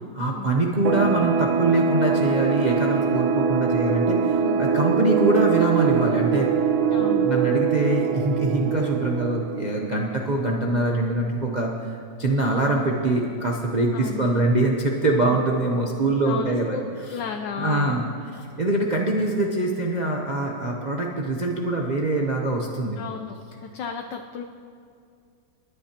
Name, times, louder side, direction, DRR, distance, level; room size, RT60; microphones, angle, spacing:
voice 1, 0.1-6.5 7.0-11.9 12.2-16.8 17.6-18.0 18.6-23.0, right 2 dB, 55° right, -1 dB, 0.4 m, -24 dB
sound 1, 0.8-10.2, right 6 dB, 80° right, 1.3 m, -23 dB
voice 2, 6.9-7.3 13.9-14.3 15.2-15.4 16.2-16.8 17.1-18.0 23.0-23.4 23.6-24.4, left 6 dB, 70° left, 3 dB, 1.3 m, -33 dB
29.0 x 10.0 x 2.9 m, 2.4 s
omnidirectional pair, 2.1 m